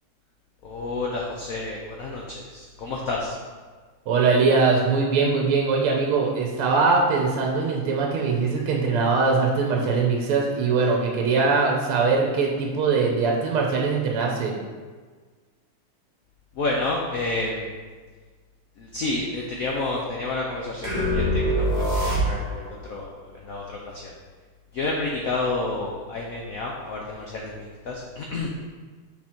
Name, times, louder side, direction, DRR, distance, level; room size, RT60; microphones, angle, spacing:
voice 1, 0.6-3.4 16.6-17.8 18.8-24.1 24.7-28.5, left 2 dB, 80° left, -1 dB, 0.7 m, -30 dB
voice 2, 4.1-14.5, right 4 dB, 80° right, 0 dB, 1.7 m, -22 dB
sound 1, 20.8-22.7, equal, 25° right, 1.2 m, -23 dB
5.9 x 4.4 x 4.4 m, 1.5 s
omnidirectional pair, 2.4 m